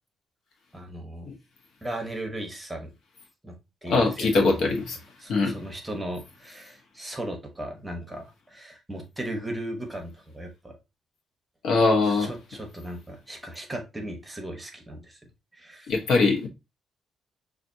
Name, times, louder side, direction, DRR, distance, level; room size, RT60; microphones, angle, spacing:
voice 1, 0.7-1.3 1.8-2.9 3.4-3.6 3.8-4.8 5.2-10.8 12.0-15.2 15.5-15.9, right 1 dB, 10° right, 1.0 m, -37 dB
voice 2, 3.8-5.0 5.3-5.5 11.6-12.3 15.9-16.5, left 3 dB, 70° left, 1.0 m, -22 dB
5.6 x 2.4 x 2.7 m
cardioid pair, 120°, 0 cm